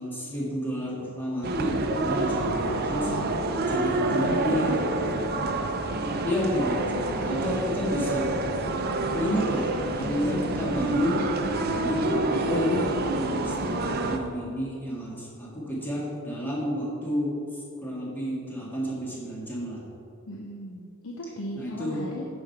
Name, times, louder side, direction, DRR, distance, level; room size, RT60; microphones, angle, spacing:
voice 1, 0.0-3.1 3.7-4.8 6.2-8.4 9.1-9.7 10.0-11.3 11.8-17.5 17.8-19.8 21.6-22.0, equal, 10° left, -6 dB, 1.8 m, -30 dB
sound 1, 1.4-14.2, right 2 dB, 45° right, 0.6 m, -27 dB
voice 2, 4.0-4.7 10.0-11.0 11.4-11.9 20.3-22.3, equal, 70° left, 0 dB, 0.8 m, -38 dB
8.7 x 6.2 x 4.6 m, 2.6 s
head